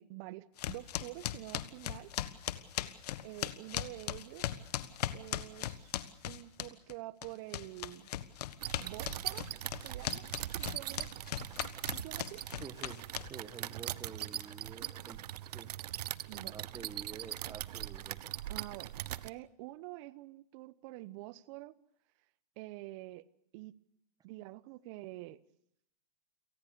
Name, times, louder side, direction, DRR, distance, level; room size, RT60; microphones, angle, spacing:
voice 1, 0.0-2.1 3.2-4.6 5.1-6.0 6.2-8.1 8.8-9.5 9.8-11.1 11.9-12.4 16.3-16.6 18.5-18.9 19.2-21.7 22.6-23.3 23.5-23.7 24.2-25.4, right 19 dB, 45° right, 1.0 m, -47 dB
sound 1, 0.6-6.9 7.2-13.6, left 12 dB, 70° left, 1.5 m, -38 dB
sound 2, 8.6-19.3, right 13 dB, 70° right, 0.9 m, -41 dB
voice 2, 12.6-15.7 16.3-18.3, right 6 dB, 15° right, 1.5 m, -49 dB
29.0 x 18.5 x 6.9 m
hypercardioid pair, 125°, 21 cm